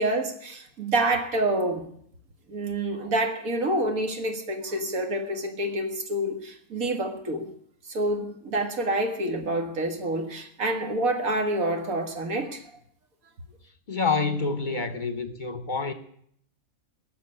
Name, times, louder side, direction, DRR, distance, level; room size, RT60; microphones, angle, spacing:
voice 1, 0.0-1.9 2.5-7.5 7.9-12.6, right 1 dB, 75° right, 2.1 m, -27 dB
voice 2, 13.9-15.9, left 4 dB, 40° left, 1.0 m, -27 dB
18.5 x 6.8 x 9.7 m
omnidirectional pair, 1.5 m